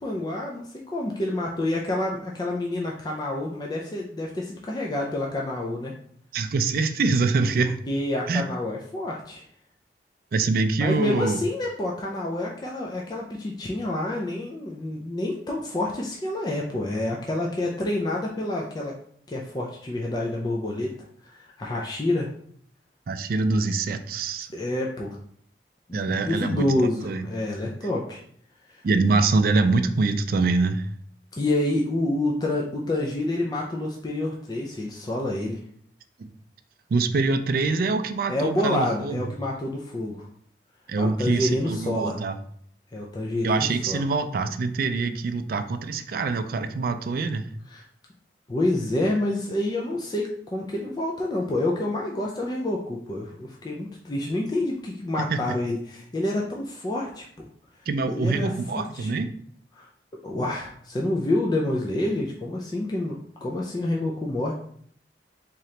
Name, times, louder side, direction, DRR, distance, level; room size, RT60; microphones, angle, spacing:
voice 1, 0.0-5.9 7.9-9.4 10.8-18.9 19.3-20.9 21.2-22.3 24.5-25.2 25.9-28.2 28.7-28.8 31.3-35.6 38.3-40.3 41.0-42.2 42.9-44.0 47.7-47.8 48.5-57.5 58.1-59.1 59.7-59.9 60.2-64.5, left 1 dB, 25° left, -2 dB, 0.4 m, -28 dB
voice 2, 6.3-7.8 8.3-8.4 10.3-11.4 23.1-24.5 25.9-26.6 27.0-27.3 28.8-30.9 36.2-36.3 36.9-39.2 40.9-42.4 43.4-47.5 55.3-55.4 57.9-59.3, right 3 dB, 55° right, 9 dB, 0.3 m, -24 dB
3.7 x 2.9 x 3.2 m, 0.62 s
head